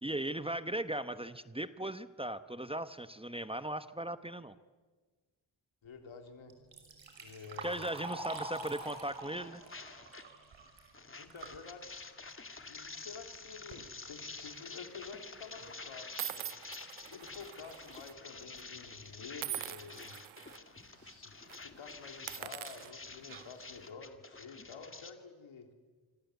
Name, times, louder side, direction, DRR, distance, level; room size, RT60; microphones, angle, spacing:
voice 1, 0.0-4.5 7.6-9.6, right 1 dB, 10° right, 12 dB, 1.0 m, -38 dB
voice 2, 5.8-6.6 7.2-8.0 11.2-11.9 12.6-16.5 17.0-20.2 20.9-21.3 21.6-25.7, left 5 dB, 80° left, 5 dB, 3.8 m, -50 dB
Liquid, 6.5-11.6 12.0-12.1 13.0-13.1 13.5-13.9 14.5-14.6 15.1-15.2 15.6-15.8, right 2 dB, 70° right, 6.1 m, -45 dB
sound 1, 8.3-10.3 10.6-25.1, left 3 dB, 25° left, 2.1 m, -49 dB
sound 2, 14.5-14.8 15.5-15.6 16.2-18.1 18.4-18.6 19.4-20.6 21.0-21.2 21.5-21.6 22.1-23.7, right 13 dB, 90° right, 0.8 m, -43 dB
26.0 x 25.5 x 8.3 m, 1.4 s
cardioid pair, 85°, 46 cm